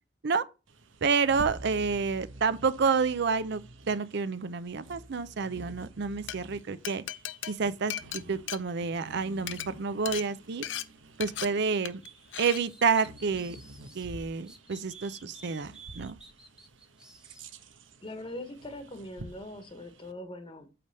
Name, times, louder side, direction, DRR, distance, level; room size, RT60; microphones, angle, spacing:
Bird vocalization bird call bird song, 0.7-20.1, right 2 dB, 85° right, 1.0 m, -49 dB
voice 1, 1.0-7.0 7.5-10.6 11.2-12.0 12.4-13.6 13.9-16.2, right 5 dB, 65° right, 0.5 m, -29 dB
Glass, 6.1-6.4 6.8-9.1 9.4-9.7 10.1-10.2 10.6-10.8 11.2-11.5 11.8-12.1 12.3-12.6, left 12 dB, 70° left, 0.6 m, -36 dB
sound 1, 12.0-14.1 14.5-17.4, right 3 dB, 5° right, 1.0 m, -52 dB
voice 2, 18.0-20.7, left 1 dB, 30° left, 1.1 m, -41 dB
8.5 x 3.4 x 6.5 m
head